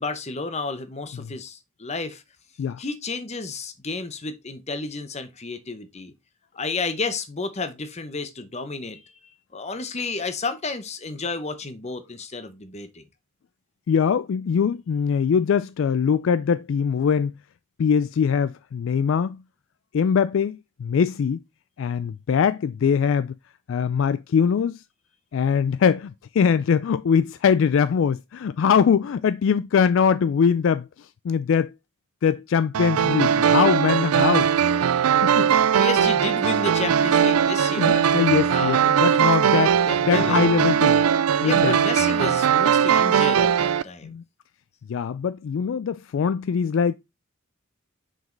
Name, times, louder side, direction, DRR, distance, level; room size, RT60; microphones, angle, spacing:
voice 1, 0.0-2.2 2.8-6.1 6.5-13.0 35.2-38.0 38.5-38.8 39.1-39.2 39.9-40.5 41.4-44.2, left 3 dB, 30° left, 0.9 m, -31 dB
voice 2, 13.9-17.3 17.8-19.4 19.9-21.4 21.8-23.3 23.7-24.8 25.3-31.7 32.2-34.5 35.2-35.5 37.7-39.8 40.0-41.0 41.4-41.7 44.0-44.2 44.9-46.9, left 6 dB, 60° left, 0.3 m, -22 dB
sound 1, 32.7-43.8, right 8 dB, 90° right, 0.4 m, -20 dB
6.1 x 5.2 x 3.8 m
head